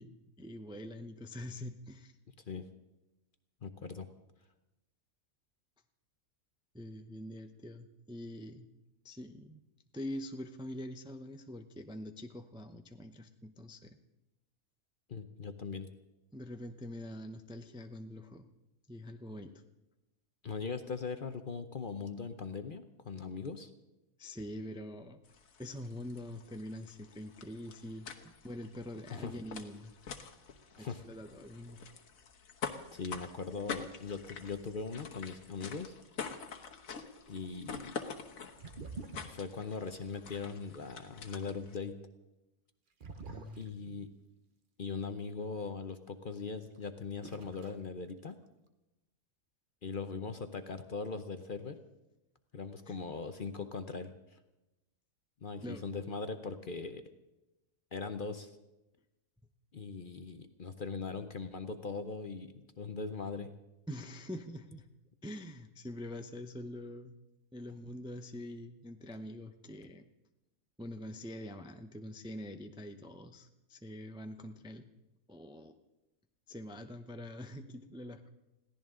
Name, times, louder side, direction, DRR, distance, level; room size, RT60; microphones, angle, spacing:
voice 1, 0.0-2.1 6.7-8.7 9.0-9.6 9.9-14.0 16.3-18.5 18.9-19.5 24.2-25.2 25.6-28.1 28.4-29.9 30.8-31.8 43.3-43.8 52.9-53.0 55.6-55.8 63.9-64.9 65.2-67.2 67.5-70.1 70.8-74.9 75.3-75.8 76.5-78.3, left 1 dB, 5° right, 7 dB, 0.5 m, -45 dB
voice 2, 3.6-4.1 15.1-15.9 20.4-23.7 29.1-29.3 30.7-31.0 32.9-35.9 37.3-38.0 39.2-42.0 43.6-44.1 44.8-48.4 49.8-51.8 52.5-54.4 55.4-57.0 57.9-58.5 59.7-63.5, left 4 dB, 45° left, 9 dB, 0.8 m, -40 dB
sound 1, 25.2-41.8, left 6 dB, 75° left, 1.5 m, -46 dB
sound 2, 34.4-34.7 38.6-39.6 43.0-44.2 46.8-46.9 47.2-47.8 48.1-48.7, right 3 dB, 40° right, 1.0 m, -47 dB
21.5 x 16.0 x 3.7 m, 0.98 s
omnidirectional pair, 1.4 m